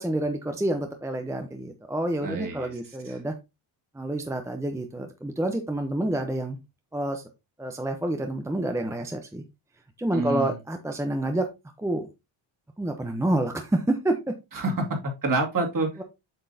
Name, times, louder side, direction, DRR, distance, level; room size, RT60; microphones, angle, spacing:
voice 1, 0.0-3.3 3.9-6.6 6.9-7.2 7.6-9.4 10.0-11.5 11.8-12.1 12.8-14.4, right 1 dB, 5° right, 5 dB, 0.7 m, -28 dB
voice 2, 2.2-2.7 3.1-3.2 10.1-10.6 14.5-16.0, right 2 dB, 40° right, 2 dB, 2.4 m, -28 dB
7.8 x 6.0 x 2.7 m, 0.24 s
cardioid pair, 115°, 48 cm